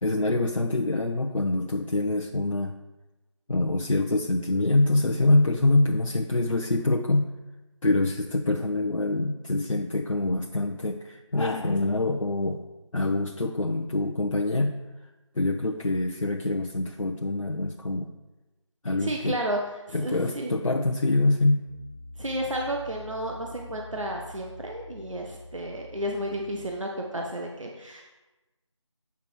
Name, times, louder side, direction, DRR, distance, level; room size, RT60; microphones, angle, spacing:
voice 1, 0.0-2.8 3.5-7.3 7.8-12.6 12.9-14.8 15.4-18.1 18.8-19.4 19.9-21.7, left 2 dB, 90° left, 1 dB, 0.8 m, -25 dB
voice 2, 19.0-19.6 19.9-20.6 22.2-28.1, right 1 dB, 75° right, 1 dB, 1.2 m, -32 dB
Piano, 21.7-26.8, left 1 dB, 45° left, 1.3 m, -45 dB
8.4 x 5.8 x 4.6 m, 1.1 s
figure-of-eight pair, 175°, 16 cm